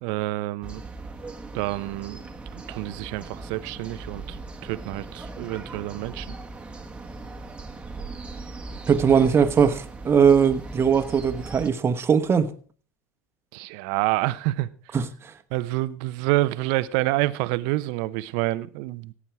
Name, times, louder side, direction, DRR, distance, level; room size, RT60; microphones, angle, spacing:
voice 1, 0.0-0.8 1.5-2.2 2.5-6.3 13.5-15.0 15.5-19.1, right 18 dB, 65° right, 0.8 m, -28 dB
sound 1, 0.6-11.7, right 3 dB, 10° right, 1.5 m, -39 dB
voice 2, 8.9-12.5 14.9-15.3, right 7 dB, 30° right, 1.3 m, -20 dB
16.0 x 8.6 x 4.8 m
hypercardioid pair, 80°, 9 cm